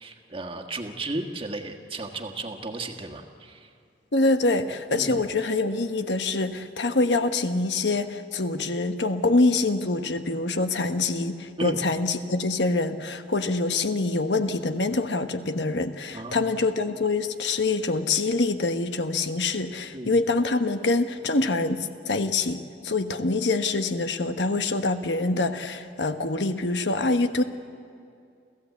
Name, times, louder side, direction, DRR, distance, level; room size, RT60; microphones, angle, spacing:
voice 1, 0.0-3.7 4.9-5.2 11.6-11.8 16.1-16.5 19.9-20.1, right 2 dB, 30° right, 4 dB, 1.5 m, -34 dB
voice 2, 4.1-27.4, left 3 dB, 85° left, 8 dB, 1.2 m, -25 dB
29.5 x 14.5 x 8.4 m, 2.4 s
head